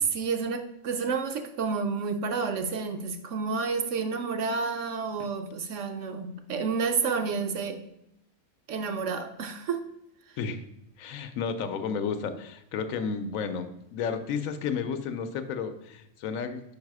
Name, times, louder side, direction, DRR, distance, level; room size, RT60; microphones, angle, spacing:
voice 1, 0.0-7.8 8.7-9.8 10.3-10.4, right 5 dB, 70° right, 7 dB, 0.8 m, -30 dB
voice 2, 11.0-16.7, left 6 dB, 75° left, 9 dB, 1.0 m, -32 dB
5.3 x 4.7 x 4.7 m, 0.82 s
omnidirectional pair, 1.5 m